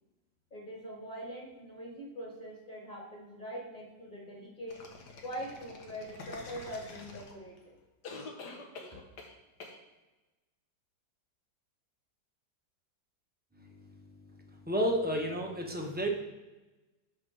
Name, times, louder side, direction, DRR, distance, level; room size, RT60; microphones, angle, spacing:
voice 1, 0.5-4.8 5.2-7.7, equal, 25° left, -3 dB, 2.2 m, -43 dB
sound 1, 4.7-7.6 8.0-9.3 9.6-9.8, left 3 dB, 65° left, 1.7 m, -46 dB
voice 2, 14.7-16.1, equal, 10° right, 0 dB, 0.4 m, -31 dB
6.3 x 5.3 x 6.2 m, 1.1 s
omnidirectional pair, 1.9 m